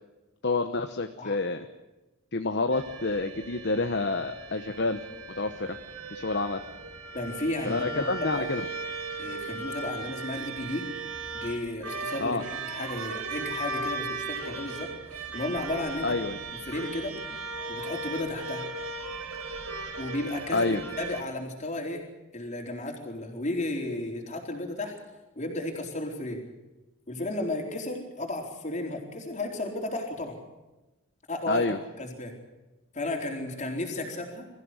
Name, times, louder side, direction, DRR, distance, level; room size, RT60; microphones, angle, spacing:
voice 1, 0.4-1.6 2.3-5.0 5.4-5.8 6.1-6.6 7.7-8.6 12.2-12.4 16.0-16.4 20.5-20.8 31.5-31.8, left 3 dB, 50° left, 7 dB, 1.0 m, -28 dB
Street Hulusi short, 2.7-21.2, right 3 dB, 80° right, 2.8 m, -37 dB
voice 2, 7.1-8.5 9.2-10.9 11.3-16.2 16.7-17.2 17.7-18.6 20.0-22.1 22.3-25.0 25.4-26.4 27.1-30.4 31.3-31.7 32.0-32.3 32.9-34.5, left 2 dB, 30° left, 2 dB, 4.2 m, -34 dB
23.5 x 15.0 x 9.8 m, 1.0 s
head